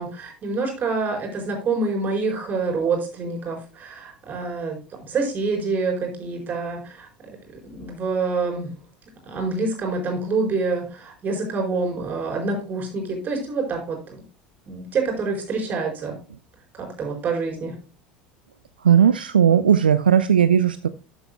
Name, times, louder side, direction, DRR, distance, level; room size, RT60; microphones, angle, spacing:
voice 1, 0.0-7.1 7.7-8.7 9.2-14.2 14.7-16.2 16.8-17.7, right 4 dB, 35° right, 1 dB, 4.5 m, -26 dB
voice 2, 18.8-20.9, right 8 dB, 80° right, 13 dB, 0.4 m, -17 dB
12.5 x 7.9 x 2.2 m, 0.34 s
figure-of-eight pair, 70°, 5 cm